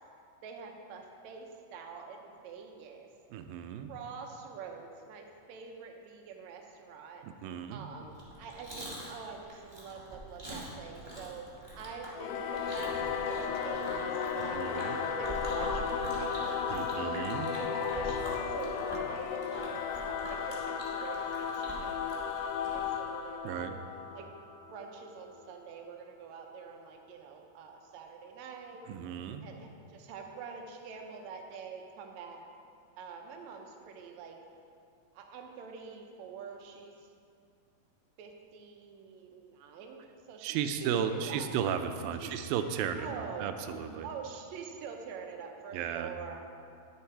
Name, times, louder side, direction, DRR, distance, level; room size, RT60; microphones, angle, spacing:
voice 1, 0.4-3.1 3.9-7.3 7.7-11.5 11.8-18.2 18.5-23.8 24.1-24.3 24.7-28.9 29.4-32.4 33.0-34.4 35.1-37.1 38.2-40.0 40.3-41.5 42.2-42.4 43.0-43.5 44.0-46.4, right 6 dB, 75° right, 3 dB, 1.7 m, -46 dB
voice 2, 3.3-3.9 7.2-7.9 14.4-15.0 16.7-17.5 23.4-23.8 28.9-29.5 40.4-44.1 45.7-46.1, right 8 dB, 90° right, 8 dB, 2.3 m, -35 dB
Chewing mastication, 8.1-22.9, right 1 dB, 25° right, 0.5 m, -44 dB
Singing / Musical instrument, 12.2-25.1, left 6 dB, 90° left, 2.4 m, -34 dB
10.5 x 7.2 x 4.5 m, 2.4 s
omnidirectional pair, 4.0 m